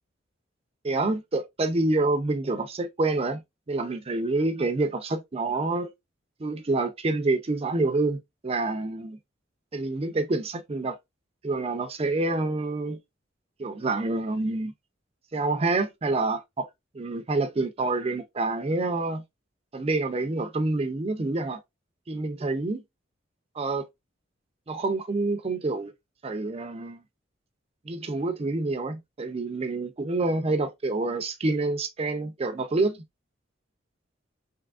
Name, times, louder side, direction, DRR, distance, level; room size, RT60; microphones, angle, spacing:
voice 1, 0.8-3.4 3.7-5.9 6.4-9.2 9.7-11.0 11.4-13.0 13.6-14.7 15.3-16.7 16.9-19.2 19.7-21.6 22.1-22.8 23.6-23.9 24.7-25.9 26.2-27.0 27.9-33.0, right 2 dB, 30° right, 0.4 m, -27 dB
3.4 x 2.9 x 2.4 m
head